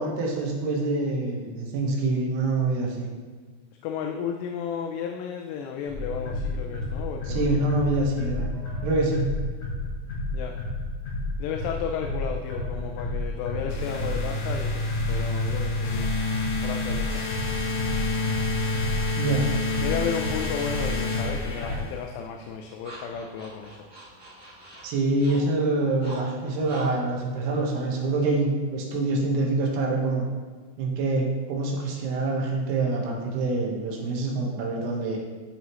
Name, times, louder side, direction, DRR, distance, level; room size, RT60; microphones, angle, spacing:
voice 1, 0.0-3.1 7.3-8.5 8.8-9.3 19.2-19.5 24.8-30.2 30.8-35.2, right 2 dB, 75° right, -1 dB, 3.3 m, -26 dB
voice 2, 3.8-7.7 10.3-10.6 11.4-16.1 16.6-17.2 19.8-23.9, left 7 dB, 85° left, 2 dB, 2.7 m, -33 dB
sound 1, 5.9-21.8, left 2 dB, 55° left, 4.0 m, -31 dB
sound 2, 13.7-22.0, left 2 dB, 70° left, 2.4 m, -29 dB
sound 3, 22.0-28.5, right 1 dB, 35° right, 1.0 m, -46 dB
13.5 x 4.9 x 3.1 m, 1.5 s
omnidirectional pair, 4.8 m